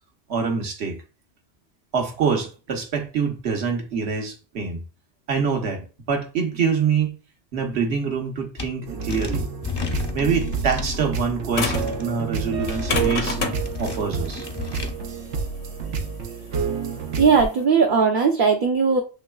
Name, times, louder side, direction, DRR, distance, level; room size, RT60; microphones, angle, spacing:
voice 1, 0.3-1.0 1.9-4.8 5.3-7.2 7.5-9.5 10.1-13.4 13.8-14.5, right 6 dB, 70° right, 1.2 m, -25 dB
sound 1, 8.6-8.7 9.1-11.0 11.5-12.0 12.5-13.1 13.6-14.9, left 4 dB, 30° left, 0.5 m, -32 dB
sound 2, 8.9-17.4, right 5 dB, 90° right, 1.0 m, -29 dB
sound 3, 11.5-12.0 12.6-17.6, left 4 dB, 55° left, 1.0 m, -28 dB
voice 2, 17.2-19.0, right 5 dB, 55° right, 0.7 m, -18 dB
7.7 x 3.1 x 2.3 m
omnidirectional pair, 1.2 m